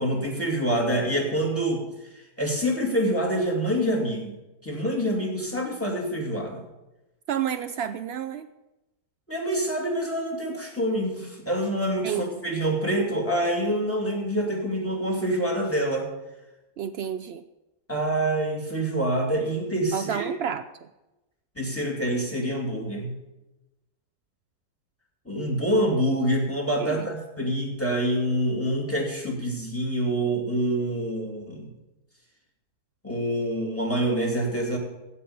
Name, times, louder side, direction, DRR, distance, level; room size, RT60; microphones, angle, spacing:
voice 1, 0.0-1.8 2.4-4.3 4.6-6.6 9.3-16.1 17.9-20.3 21.6-23.1 25.3-31.6 33.0-34.8, right 1 dB, 10° left, 1 dB, 2.8 m, -26 dB
voice 2, 7.3-8.5 12.0-12.3 16.8-17.4 19.9-20.9 26.8-27.1, right 9 dB, 85° right, 11 dB, 0.5 m, -30 dB
16.0 x 5.5 x 8.7 m, 0.99 s
omnidirectional pair, 1.7 m